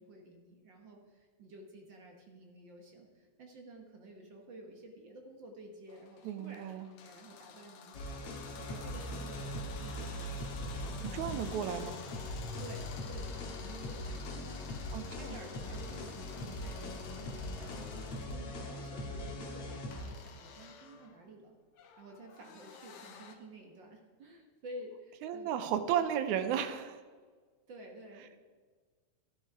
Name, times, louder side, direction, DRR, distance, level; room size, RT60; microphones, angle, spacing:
voice 1, 0.0-11.7 12.6-14.9 15.2-21.5 22.0-25.5 27.7-28.4, right 1 dB, 50° right, 2 dB, 1.6 m, -52 dB
sound 1, 5.9-18.5 19.9-23.4, left 6 dB, 80° left, 2.4 m, -52 dB
voice 2, 6.3-6.9 11.0-11.9 14.9-15.4 25.2-27.0, right 9 dB, 85° right, 11 dB, 2.2 m, -34 dB
sound 2, 7.9-20.0, left 1 dB, 60° left, 2.6 m, -41 dB
12.0 x 10.0 x 4.7 m, 1.5 s
omnidirectional pair, 3.3 m